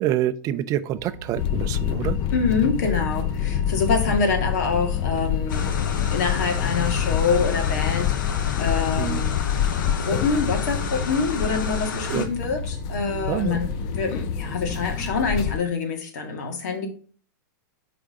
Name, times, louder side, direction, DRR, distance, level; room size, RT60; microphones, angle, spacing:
voice 1, 0.0-2.2 9.0-9.2 12.1-12.3 13.3-13.6, right 12 dB, 30° right, 12 dB, 0.5 m, -26 dB
sound 1, 0.9-15.2, right 1 dB, 10° left, 3.4 m, -36 dB
sound 2, 1.4-15.6, left 11 dB, 40° left, 0.4 m, -27 dB
voice 2, 2.3-9.4 9.8-16.9, left 4 dB, 60° left, 4 dB, 1.9 m, -26 dB
sound 3, 5.5-12.3, left 5 dB, 80° left, 1.1 m, -33 dB
5.2 x 4.9 x 3.7 m, 0.41 s
hypercardioid pair, 135°, 10 cm